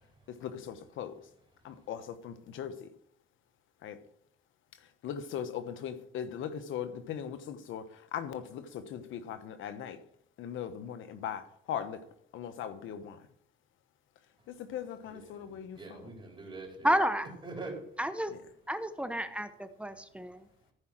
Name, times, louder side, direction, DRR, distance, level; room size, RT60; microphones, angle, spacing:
voice 1, 0.4-1.1 1.6-2.7 3.8-4.0 5.0-7.8 8.1-10.0 10.4-11.4 11.7-12.0 12.3-13.2 14.7-16.0, left 9 dB, 80° left, 1.1 m, -39 dB
voice 2, 15.0-17.0 17.4-17.8, right 3 dB, 25° right, 4.1 m, -44 dB
voice 3, 16.8-17.3 18.0-18.3 18.7-20.4, equal, 5° right, 0.9 m, -30 dB
14.5 x 4.9 x 6.1 m
cardioid pair, 90°, 20 cm